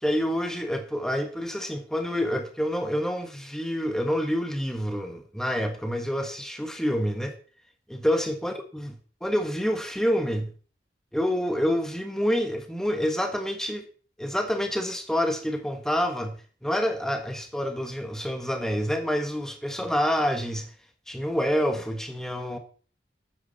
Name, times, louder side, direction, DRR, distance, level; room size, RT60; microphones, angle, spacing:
voice 1, 0.0-7.3 7.9-10.5 11.1-13.8 14.2-20.7 21.1-22.6, equal, 5° left, 1.5 m, -27 dB
12.5 x 9.1 x 4.2 m
head